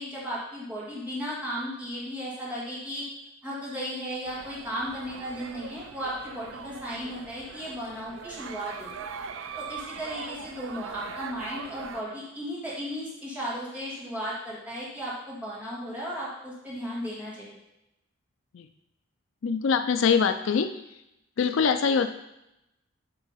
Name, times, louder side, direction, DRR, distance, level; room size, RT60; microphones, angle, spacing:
voice 1, 0.0-3.0 3.4-8.9 9.6-17.6, equal, 10° right, -7 dB, 1.9 m, -35 dB
sound 1, 4.3-12.0, right 6 dB, 65° right, 0.4 m, -41 dB
voice 2, 19.4-20.7 21.4-22.1, left 6 dB, 65° left, 9 dB, 0.4 m, -23 dB
7.7 x 3.5 x 5.6 m, 0.88 s
head